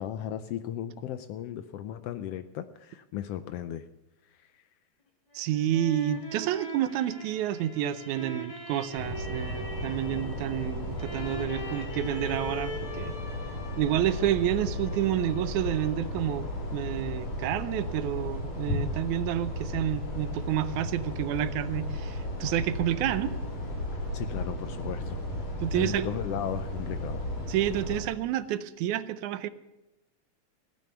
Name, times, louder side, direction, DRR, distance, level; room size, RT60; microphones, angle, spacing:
voice 1, 0.0-3.8 4.5-4.6 24.1-25.2 25.7-27.2, left 10 dB, 90° left, 11 dB, 1.3 m, -36 dB
sound 1, 5.3-16.2, right 1 dB, 20° left, 1.1 m, -42 dB
voice 2, 5.3-13.1 13.8-16.5 16.7-23.3 25.6-26.1 27.5-29.5, right 11 dB, 80° right, 14 dB, 2.1 m, -29 dB
sound 2, 9.0-28.0, left 1 dB, 65° left, 4.2 m, -35 dB
16.0 x 9.2 x 7.0 m, 1.0 s
omnidirectional pair, 3.4 m